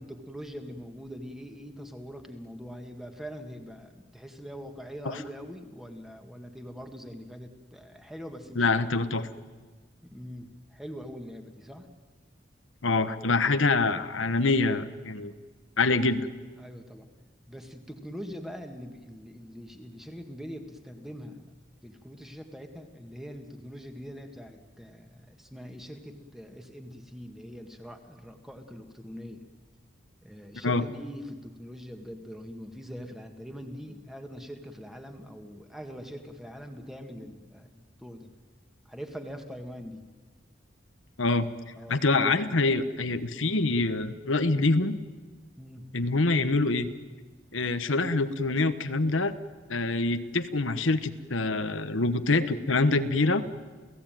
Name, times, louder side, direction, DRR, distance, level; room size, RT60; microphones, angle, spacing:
voice 1, 0.0-8.7 10.0-11.9 16.6-17.1 17.5-21.5 21.8-29.4 30.2-38.3 38.9-40.0 41.8-42.0 45.6-45.9, equal, ahead, 5 dB, 1.9 m, -43 dB
voice 2, 8.6-9.3 12.8-15.3 15.8-16.3 30.6-30.8 41.2-41.5 41.9-45.0 45.9-46.9 47.5-49.3 49.7-53.4, left 3 dB, 90° left, 10 dB, 1.2 m, -25 dB
29.0 x 17.0 x 9.2 m, 1.4 s
head